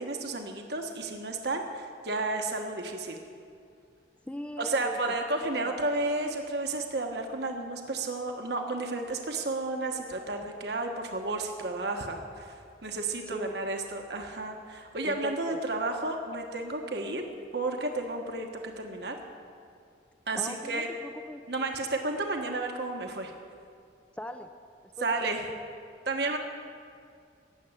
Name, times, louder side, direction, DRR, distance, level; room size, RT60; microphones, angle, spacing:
voice 1, 0.0-3.2 4.6-12.6 12.8-17.2 17.5-19.2 20.3-20.9 21.5-23.3 25.0-25.5 26.1-26.4, right 2 dB, 65° right, 3 dB, 1.2 m, -32 dB
voice 2, 4.3-5.0 5.6-5.7 13.3-13.6 15.0-15.6 20.4-21.4 24.2-24.5 24.8-25.6, equal, 5° left, 7 dB, 0.5 m, -40 dB
15.5 x 7.6 x 9.8 m, 2.3 s
head